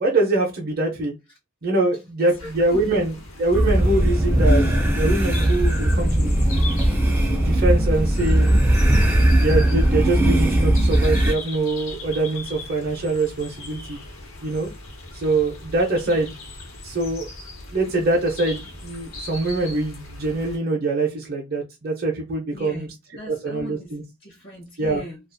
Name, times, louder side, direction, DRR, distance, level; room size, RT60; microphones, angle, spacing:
voice 1, 0.0-1.1 1.6-4.6 4.9-6.4 7.4-8.6 9.3-14.0 14.4-14.7 15.1-16.3 16.8-17.3 17.7-22.9 23.3-24.0 24.8-25.0, right 2 dB, 50° right, 0.6 m, -24 dB
voice 2, 2.2-2.9 16.1-16.2 22.5-25.2, equal, 50° left, 0.7 m, -39 dB
sound 1, 2.4-20.6, left 2 dB, 80° left, 0.9 m, -39 dB
sound 2, 3.5-11.3, right 1 dB, 10° right, 0.4 m, -18 dB
2.4 x 2.4 x 2.5 m
head